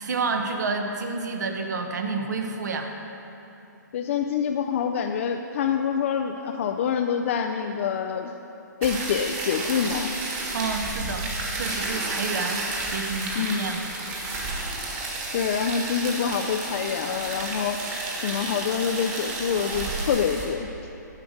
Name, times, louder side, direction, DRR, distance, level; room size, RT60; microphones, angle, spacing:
voice 1, 0.0-2.9 10.5-13.8, right 4 dB, 65° right, 4 dB, 1.0 m, -29 dB
voice 2, 3.9-8.3 8.8-10.1 13.3-13.6 15.3-17.9 18.2-20.7, left 7 dB, 45° left, 4 dB, 0.4 m, -26 dB
sound 1, 8.8-20.5, right 2 dB, 25° right, 1.5 m, -31 dB
10.5 x 6.4 x 5.1 m, 2.9 s
hypercardioid pair, 150°, 10 cm